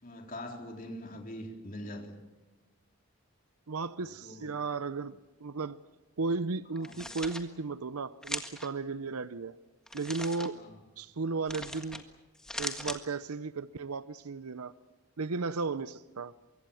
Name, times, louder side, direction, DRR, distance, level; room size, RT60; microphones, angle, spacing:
voice 1, 0.0-2.1 4.0-4.6 6.8-7.0 10.6-10.8, left 1 dB, 40° left, 2 dB, 3.8 m, -43 dB
voice 2, 3.7-5.8 6.2-9.6 9.9-10.6 11.0-12.0 12.6-14.7 15.2-16.3, right 4 dB, 85° right, 15 dB, 0.7 m, -35 dB
sound 1, 6.8-7.4 8.2-8.7 9.9-10.5 11.5-12.0 12.3-13.0, left 1 dB, 5° left, 1.6 m, -39 dB
24.5 x 24.0 x 7.1 m, 1.2 s
head